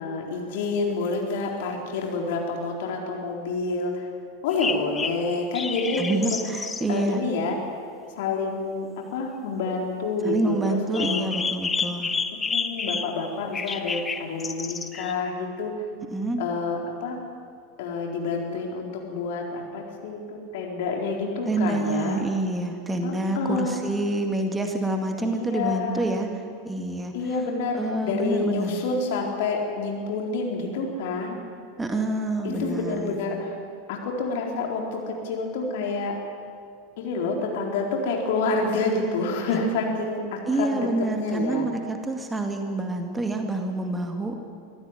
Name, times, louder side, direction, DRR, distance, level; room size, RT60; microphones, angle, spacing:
voice 1, 0.0-4.1 4.4-6.1 6.9-7.6 8.2-11.3 12.5-15.7 16.4-17.2 17.8-22.2 23.0-23.8 25.2-26.1 27.1-31.4 32.4-33.6 33.9-36.2 37.0-40.9 41.2-41.7, left 3 dB, 55° left, 1 dB, 4.2 m, -28 dB
sound 1, 4.5-6.8 10.9-13.3 13.5-15.1, left 5 dB, 15° left, 1.2 m, -30 dB
voice 2, 6.0-7.2 10.2-12.1 16.1-16.4 21.5-26.3 26.6-27.1 27.8-28.8 31.8-33.2 39.5-39.6 40.5-44.3, right 2 dB, 10° right, 4 dB, 2.1 m, -27 dB
24.5 x 15.0 x 9.5 m, 2.3 s
figure-of-eight pair, 85°, 0 cm